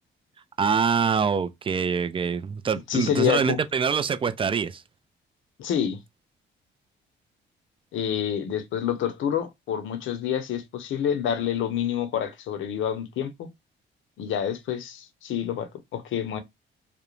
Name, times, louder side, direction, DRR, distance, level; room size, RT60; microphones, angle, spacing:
voice 1, 0.6-4.8, right 6 dB, 25° right, 0.3 m, -25 dB
voice 2, 2.9-3.6 5.6-6.0 7.9-13.5 14.2-16.4, left 9 dB, 75° left, 0.7 m, -28 dB
2.5 x 2.0 x 3.0 m
cardioid pair, 90°, 20 cm